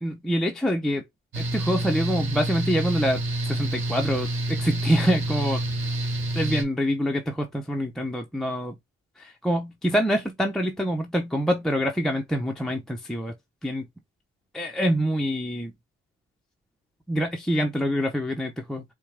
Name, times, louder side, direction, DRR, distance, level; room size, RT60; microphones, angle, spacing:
voice 1, 0.0-1.0 1.4-5.6 6.3-8.7 9.2-13.3 13.6-13.9 14.5-15.7 17.1-18.8, equal, ahead, 0.5 m, -26 dB
Mechanical fan, 1.3-6.6, right 1 dB, 40° right, 1.9 m, -28 dB
4.5 x 2.2 x 3.1 m
cardioid pair, 90°, 30 cm